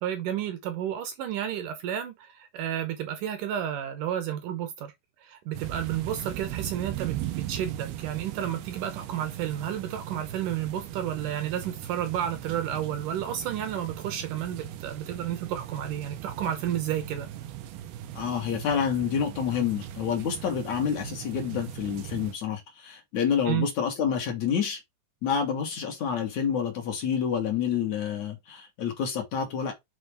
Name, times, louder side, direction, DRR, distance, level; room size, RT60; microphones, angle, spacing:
voice 1, 0.0-4.9 5.2-17.3 23.5-23.7, right 10 dB, 70° right, 2.3 m, -31 dB
sound 1, 5.5-22.3, right 12 dB, 85° right, 2.8 m, -39 dB
voice 2, 18.1-24.8 25.2-29.7, left 7 dB, 55° left, 2.5 m, -28 dB
8.1 x 4.3 x 3.5 m
omnidirectional pair, 4.3 m